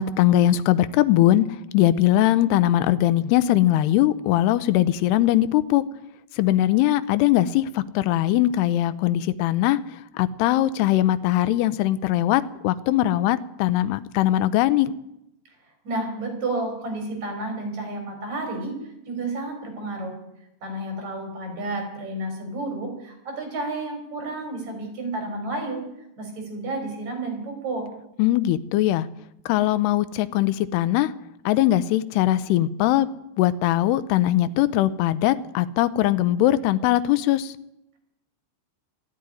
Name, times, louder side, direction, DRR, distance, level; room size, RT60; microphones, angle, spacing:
voice 1, 0.0-1.5 1.7-5.8 6.4-9.8 10.2-14.9 28.2-29.1 29.5-31.1 31.5-33.1 33.4-37.5, left 13 dB, 80° left, 14 dB, 2.5 m, -21 dB
voice 2, 15.8-18.8 19.1-20.1 20.6-25.8 26.2-27.9, right 2 dB, 40° right, 4 dB, 4.7 m, -31 dB
13.5 x 10.5 x 9.8 m, 0.85 s
omnidirectional pair, 5.1 m